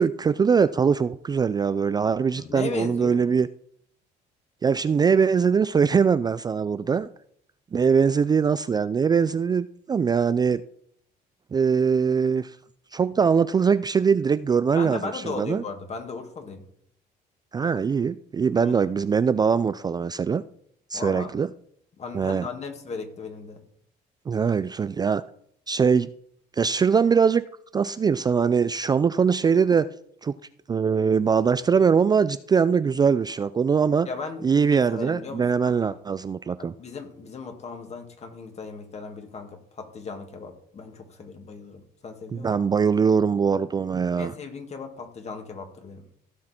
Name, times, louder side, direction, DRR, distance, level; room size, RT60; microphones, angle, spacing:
voice 1, 0.0-3.5 4.6-7.1 7.7-10.6 11.5-12.6 12.9-15.6 17.5-20.4 20.9-21.5 22.1-22.5 24.3-25.2 25.7-26.1 26.5-27.4 27.7-29.9 30.2-30.3 30.7-34.1 34.4-36.7 42.3-44.3, right 6 dB, 25° right, 14 dB, 0.3 m, -22 dB
voice 2, 2.3-3.2 14.8-16.6 18.6-18.8 20.9-21.3 22.0-23.6 34.0-35.9 36.6-42.6 44.2-46.1, left 4 dB, 40° left, 5 dB, 2.2 m, -37 dB
16.0 x 6.4 x 4.4 m, 0.66 s
cardioid pair, 110°, 17 cm